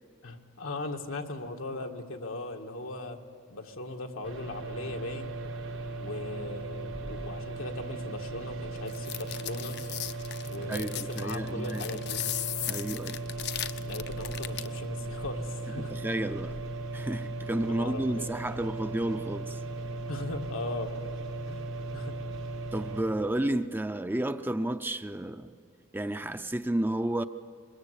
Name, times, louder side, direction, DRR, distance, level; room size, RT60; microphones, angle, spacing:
voice 1, 0.2-3.2 3.5-5.4 6.0-9.8 10.5-12.2 13.8-15.9 17.5-18.3 20.1-20.9 21.5-21.7 21.9-22.2, left 2 dB, 85° left, 1.8 m, -38 dB
sound 1, 4.2-23.0, right 2 dB, 85° right, 5.6 m, -37 dB
sound 2, 8.9-14.8, left 12 dB, 55° left, 0.7 m, -36 dB
voice 2, 10.7-11.8 12.7-13.2 15.9-16.6 16.9-19.6 22.7-25.5 25.9-27.2, right 1 dB, 10° right, 0.5 m, -31 dB
24.5 x 21.5 x 8.3 m
head